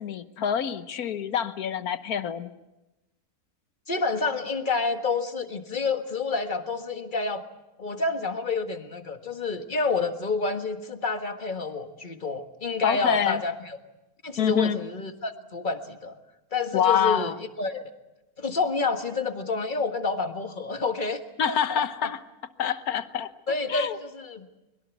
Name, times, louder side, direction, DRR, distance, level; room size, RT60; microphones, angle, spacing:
voice 1, 0.0-2.5 12.8-13.4 14.4-14.8 16.7-17.4 21.4-22.2 22.6-23.3 23.7-24.0, left 8 dB, 85° left, 12 dB, 1.5 m, -26 dB
voice 2, 3.9-7.4 7.8-13.8 14.2-16.2 16.5-17.9 18.4-21.2 21.5-22.1 23.5-24.5, left 4 dB, 35° left, 7 dB, 1.7 m, -29 dB
23.5 x 22.0 x 8.2 m, 0.99 s
omnidirectional pair, 1.5 m